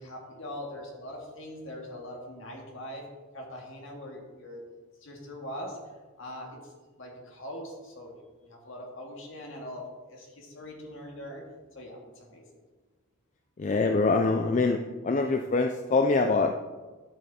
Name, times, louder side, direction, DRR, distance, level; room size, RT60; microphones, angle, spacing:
voice 1, 0.0-3.1 3.3-4.6 5.0-5.8 6.2-11.5 11.7-12.4, left 1 dB, 60° left, 0 dB, 2.2 m, -42 dB
voice 2, 13.6-14.8 15.0-16.5, left 3 dB, 35° left, 6 dB, 0.4 m, -24 dB
12.0 x 6.6 x 4.3 m, 1.3 s
head